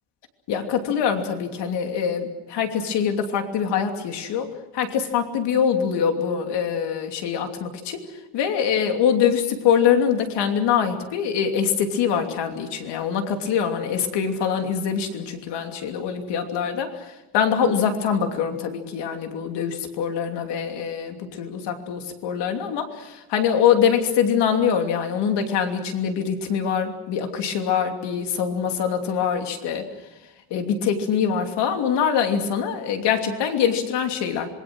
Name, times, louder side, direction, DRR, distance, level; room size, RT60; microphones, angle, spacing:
voice 1, 0.5-4.5 4.7-8.0 8.3-17.1 17.3-29.9 30.5-34.5, left 7 dB, 80° left, 4 dB, 3.0 m, -24 dB
26.5 x 22.0 x 6.3 m, 0.97 s
cardioid pair, 175°, 41 cm